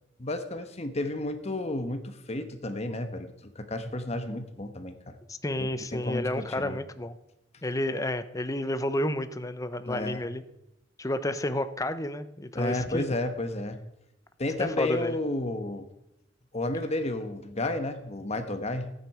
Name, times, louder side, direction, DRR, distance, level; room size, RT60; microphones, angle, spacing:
voice 1, 0.2-5.2 5.6-6.8 9.9-10.2 12.5-13.8 14.4-15.9 16.5-18.9, left 2 dB, 35° left, 8 dB, 1.2 m, -32 dB
voice 2, 5.3-7.2 7.6-10.4 11.0-13.1 14.6-15.2, left 1 dB, 20° left, 11 dB, 0.7 m, -31 dB
14.0 x 9.3 x 4.9 m, 0.85 s
head